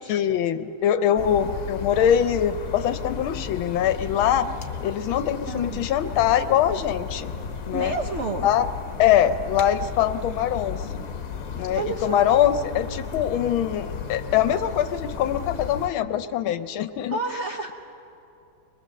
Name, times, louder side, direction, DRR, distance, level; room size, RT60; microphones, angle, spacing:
voice 1, 0.1-4.5 4.8-7.3 7.7-7.9 8.4-8.7 9.0-11.0 11.5-17.2, left 10 dB, 80° left, 11 dB, 1.5 m, -23 dB
sound 1, 1.2-15.9, left 6 dB, 50° left, 1.4 m, -34 dB
voice 2, 5.4-5.9 7.7-8.5 11.8-12.2 17.1-17.7, right 3 dB, 55° right, 3 dB, 0.8 m, -30 dB
23.0 x 21.5 x 7.5 m, 2.8 s
omnidirectional pair, 2.2 m